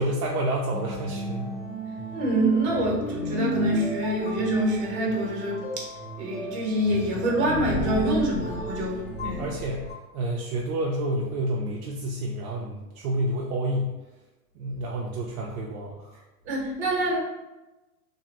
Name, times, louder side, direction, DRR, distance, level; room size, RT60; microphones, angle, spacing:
voice 1, 0.0-1.6 8.5-8.6 9.4-9.8 10.1-14.0 14.6-16.2, right 1 dB, 70° right, -2 dB, 0.5 m, -29 dB
sound 1, 0.7-9.9, right 1 dB, 25° left, 0.9 m, -33 dB
voice 2, 2.1-5.9 6.2-9.4 16.5-17.2, right 1 dB, 45° right, -2 dB, 1.0 m, -26 dB
2.6 x 2.3 x 2.8 m, 1.1 s
hypercardioid pair, 150°, 46 cm